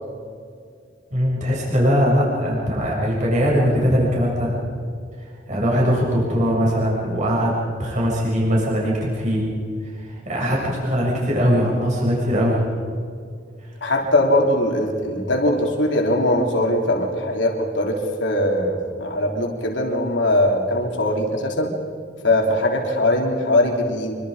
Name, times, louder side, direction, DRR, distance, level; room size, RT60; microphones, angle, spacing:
voice 1, 1.1-4.5 5.5-7.5 7.8-9.4 10.0-12.6, equal, 40° right, -4 dB, 6.9 m, -20 dB
voice 2, 13.8-21.7 22.2-24.2, left 1 dB, 75° left, 1 dB, 3.5 m, -21 dB
27.0 x 24.5 x 5.1 m, 2.2 s
head